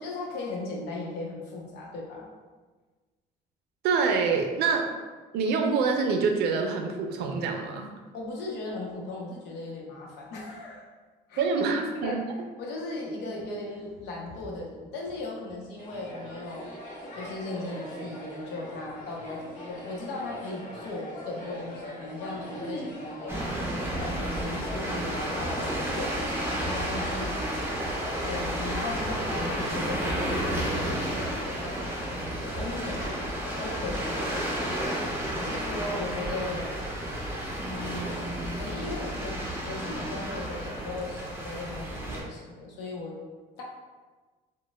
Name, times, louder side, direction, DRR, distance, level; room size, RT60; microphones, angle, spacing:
voice 1, 0.0-2.2 8.1-10.8 11.3-11.5 12.0-16.7 17.1-23.4 24.0-27.5 28.2-31.3 32.5-33.1 33.5-34.5 35.3-36.8 37.6-43.2 43.6-43.7, left 2 dB, 85° left, -2 dB, 0.8 m, -37 dB
voice 2, 3.8-4.9 5.3-7.9 11.4-12.2, right 5 dB, 75° right, 3 dB, 0.5 m, -26 dB
sound 1, 15.8-34.9, equal, 50° left, 0.8 m, -41 dB
sound 2, 23.3-42.2, equal, 15° right, 0.7 m, -32 dB
4.0 x 2.2 x 2.2 m, 1.3 s
cardioid pair, 110°, 17 cm